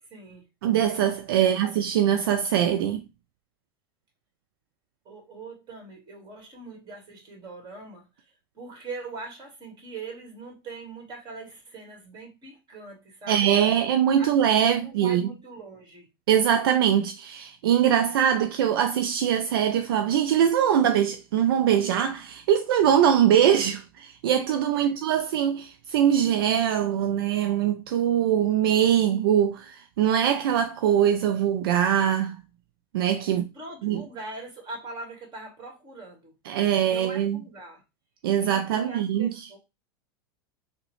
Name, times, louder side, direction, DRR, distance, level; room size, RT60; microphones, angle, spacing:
voice 1, 0.0-0.5 1.4-1.5 5.0-8.3 8.5-13.5 14.2-14.3 14.6-16.1 24.7-25.0 33.3-36.3 36.9-37.8 38.4-39.6, right 3 dB, 35° right, 1.7 m, -42 dB
voice 2, 0.6-3.0 13.3-15.2 16.3-32.4 32.9-33.4 33.8-34.0 36.5-37.4 38.2-39.5, right 9 dB, 70° right, 0.4 m, -22 dB
3.5 x 2.1 x 3.0 m
hypercardioid pair, 95°, 13 cm